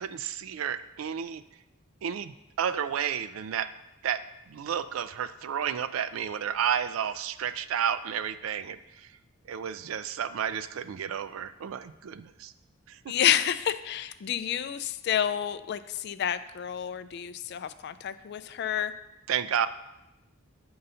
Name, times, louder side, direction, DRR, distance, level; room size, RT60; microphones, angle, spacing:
voice 1, 0.0-1.4 2.0-3.7 4.0-9.1 9.5-12.5 12.9-13.0 19.3-19.7, right 8 dB, 80° right, 13 dB, 0.4 m, -31 dB
voice 2, 13.1-18.9, left 10 dB, 55° left, 13 dB, 0.3 m, -29 dB
7.9 x 3.9 x 5.5 m, 0.94 s
head